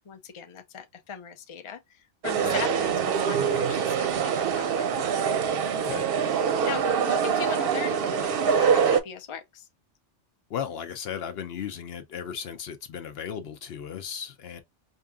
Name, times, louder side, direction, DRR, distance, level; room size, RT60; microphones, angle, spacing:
voice 1, 0.0-5.2 6.6-9.7, left 7 dB, 45° left, 0.4 m, -39 dB
sound 1, 2.2-9.0, right 7 dB, 65° right, 0.7 m, -24 dB
voice 2, 5.7-6.0 10.5-14.6, left 8 dB, 70° left, 0.8 m, -36 dB
4.4 x 2.6 x 2.3 m
omnidirectional pair, 1.2 m